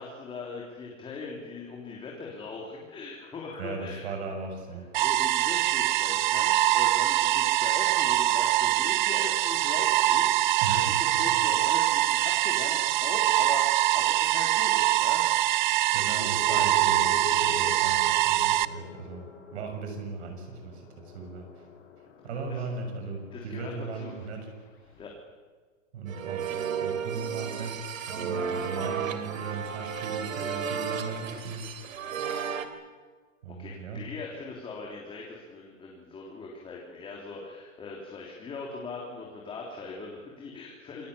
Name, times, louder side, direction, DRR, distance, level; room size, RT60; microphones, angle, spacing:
voice 1, 0.0-4.1 5.0-15.3 22.5-22.6 23.3-24.2 25.0-25.2 33.6-41.1, left 3 dB, 15° left, -2 dB, 3.5 m, -40 dB
voice 2, 3.6-4.9 10.6-11.4 12.0-12.1 15.9-21.5 22.2-24.5 25.9-26.5 26.8-32.0 33.4-34.0, right 4 dB, 55° right, 4 dB, 7.0 m, -37 dB
sound 1, 4.9-18.6, right 15 dB, 40° right, 0.7 m, -24 dB
sound 2, 16.2-25.1, left 6 dB, 50° left, 7.5 m, -44 dB
sound 3, 26.1-32.7, right 7 dB, 85° right, 3.3 m, -33 dB
27.5 x 19.0 x 8.5 m, 1.5 s
hypercardioid pair, 155°, 39 cm